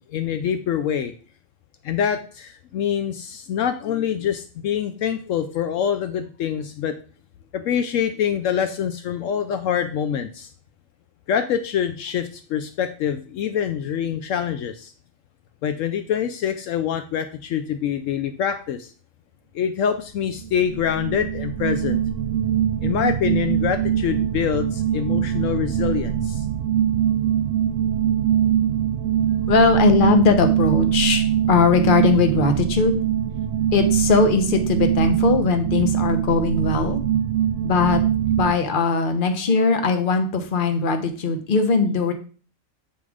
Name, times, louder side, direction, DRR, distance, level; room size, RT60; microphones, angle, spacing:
voice 1, 0.1-1.1 1.8-6.9 7.5-10.5 11.3-14.9 15.6-18.9 19.5-22.0 22.8-26.5, left 8 dB, 75° left, 9 dB, 0.9 m, -25 dB
sound 1, 20.3-38.5, right 10 dB, 70° right, 1.0 m, -22 dB
voice 2, 29.5-33.0 33.7-37.0 37.6-38.0 38.4-42.1, left 4 dB, 45° left, 7 dB, 1.0 m, -20 dB
7.8 x 3.7 x 4.9 m, 0.40 s
omnidirectional pair, 1.4 m